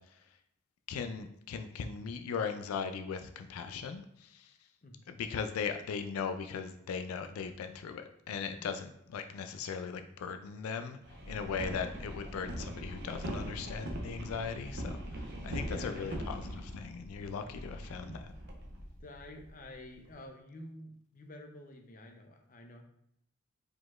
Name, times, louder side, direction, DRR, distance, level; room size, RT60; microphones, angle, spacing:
voice 1, 0.9-4.5 5.1-11.0 11.3-18.3, left 6 dB, 90° left, 8 dB, 0.4 m, -38 dB
sound 1, 11.0-20.2, equal, 50° right, 0.8 m, -41 dB
voice 2, 15.5-16.2 19.0-22.8, left 1 dB, 40° left, 3 dB, 0.6 m, -49 dB
4.9 x 3.9 x 2.4 m, 0.77 s
head